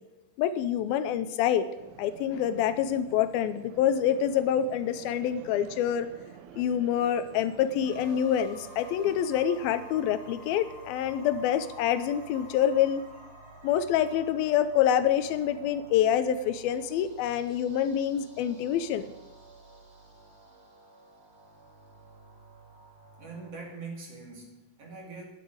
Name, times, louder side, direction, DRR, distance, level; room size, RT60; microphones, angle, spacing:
voice 1, 0.4-6.1 6.6-13.0 13.6-19.1, left 9 dB, 80° left, 12 dB, 2.5 m, -26 dB
sound 1, 1.8-8.2, right 8 dB, 70° right, 2.0 m, -49 dB
sound 2, 7.8-23.5, right 2 dB, 15° right, 4.2 m, -50 dB
voice 2, 23.2-25.2, right 4 dB, 45° right, 1 dB, 3.2 m, -42 dB
10.5 x 8.4 x 9.4 m, 1.0 s
omnidirectional pair, 4.3 m